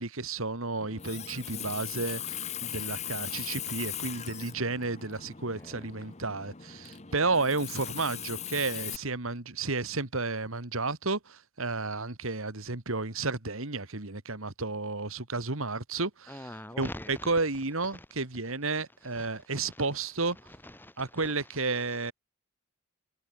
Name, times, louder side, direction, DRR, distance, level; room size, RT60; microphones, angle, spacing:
voice 1, 0.0-16.5 16.8-20.4 21.0-22.1, right 3 dB, 70° right, 2.4 m, -32 dB
Water tap faucet, 0.8-9.0, left 9 dB, 30° left, 1.2 m, -39 dB
voice 2, 5.6-5.9 16.3-17.3 17.9-18.1 18.7-18.8 19.2-19.9 20.5-21.2, left 1 dB, 10° left, 2.6 m, -44 dB
head